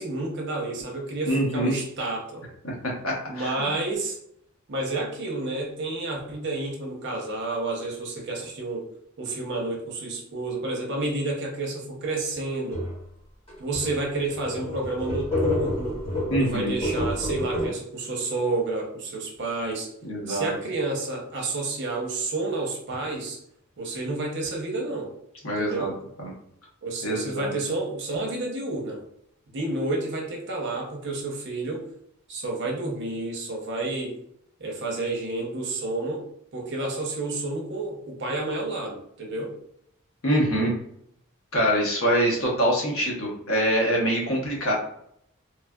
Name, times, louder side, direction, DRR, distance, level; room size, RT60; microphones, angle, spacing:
voice 1, 0.0-2.4 3.3-4.2 4.7-8.9 9.2-12.9 13.6-16.0 16.4-19.9 20.3-23.4 23.8-25.1 25.6-26.0 26.8-29.0 29.5-31.9 32.3-34.1 34.6-36.3 36.5-39.5, right 2 dB, 55° right, -1 dB, 0.7 m, -30 dB
voice 2, 1.3-1.7 3.0-3.7 16.3-16.7 20.0-20.5 25.4-25.9 26.2-26.3 27.0-27.5 40.2-40.7 41.5-44.7, equal, 70° left, -2 dB, 0.9 m, -24 dB
sound 1, 12.7-13.0 13.5-13.6 13.8-14.0 14.3-17.7, left 1 dB, 25° left, 1.4 m, -28 dB
3.1 x 2.3 x 2.2 m, 0.71 s
head